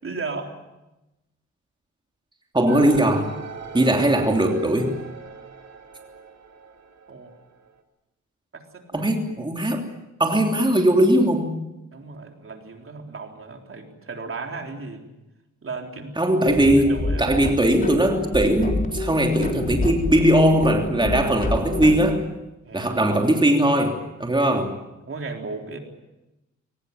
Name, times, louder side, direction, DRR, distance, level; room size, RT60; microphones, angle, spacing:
voice 1, 0.0-0.6 7.1-7.3 8.5-9.1 11.9-15.0 15.6-17.3 22.6-23.1 25.1-25.8, right 4 dB, 45° right, 3 dB, 3.9 m, -36 dB
voice 2, 2.5-3.3 3.7-4.9 8.9-9.8 10.2-11.5 16.2-22.2 22.7-24.7, right 1 dB, 15° right, 2 dB, 3.1 m, -19 dB
sound 1, 2.7-7.8, right 6 dB, 60° right, 2.7 m, -39 dB
sound 2, 16.5-22.1, left 2 dB, 30° left, 3.7 m, -28 dB
22.5 x 19.5 x 9.4 m, 0.98 s
cardioid pair, 85°, 29 cm